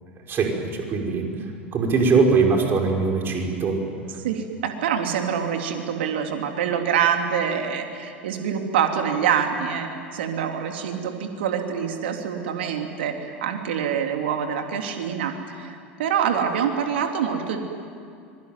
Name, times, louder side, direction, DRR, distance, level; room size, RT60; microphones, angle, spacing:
voice 1, 0.3-1.3 1.7-3.8, right 4 dB, 35° right, 1 dB, 5.7 m, -21 dB
voice 2, 4.2-17.6, right 8 dB, 70° right, 4 dB, 3.3 m, -25 dB
25.5 x 22.5 x 9.4 m, 2.4 s
hypercardioid pair, 80°, 6 cm